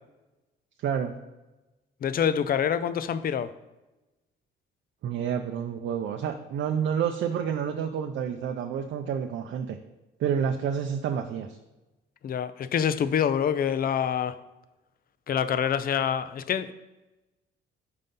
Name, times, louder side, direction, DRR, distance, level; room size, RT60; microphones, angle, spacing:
voice 1, 0.8-1.1 5.0-9.8 10.2-11.6, right 8 dB, 70° right, 5 dB, 0.5 m, -29 dB
voice 2, 2.0-3.5 12.2-14.4 15.3-16.7, left 8 dB, 50° left, 13 dB, 0.5 m, -26 dB
5.6 x 3.9 x 5.3 m, 1.1 s
cardioid pair, 90°, 20 cm